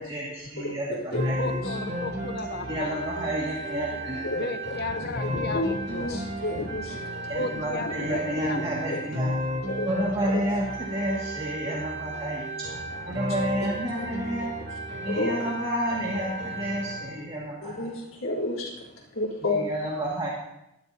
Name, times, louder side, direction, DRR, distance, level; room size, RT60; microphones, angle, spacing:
voice 1, 0.0-1.4 2.7-4.3 7.3-9.4 9.8-12.5 13.0-14.5 15.0-17.9 19.4-20.3, right 1 dB, 30° right, -5 dB, 2.2 m, -30 dB
voice 2, 0.6-1.8 3.9-4.5 5.2-7.3 8.9-9.0 9.7-9.9 10.2-10.4 13.6-14.0 14.3-14.5 15.1-15.5 17.6-19.7, left 2 dB, 80° left, -4 dB, 3.7 m, -32 dB
sound 1, 1.1-17.2, equal, 60° right, 2.7 m, -33 dB
voice 3, 1.3-3.1 4.4-6.2 6.5-7.0 7.3-8.6 8.9-9.0, left 3 dB, 55° left, 8 dB, 0.8 m, -34 dB
18.5 x 13.0 x 2.9 m, 0.87 s
head